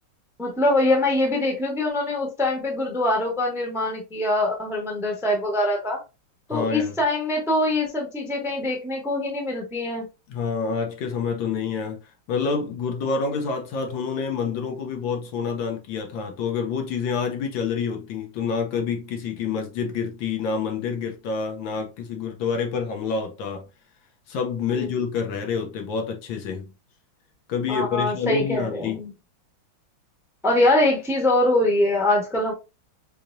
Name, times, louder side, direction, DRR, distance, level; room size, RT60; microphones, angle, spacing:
voice 1, 0.4-6.0 6.5-10.0 24.7-24.9 27.7-29.1 30.4-32.5, left 1 dB, ahead, 0.7 m, -23 dB
voice 2, 6.5-6.9 10.3-12.0 12.3-23.7 24.3-26.7 27.5-29.0, left 5 dB, 70° left, 1.4 m, -27 dB
4.8 x 2.8 x 2.5 m
omnidirectional pair, 2.3 m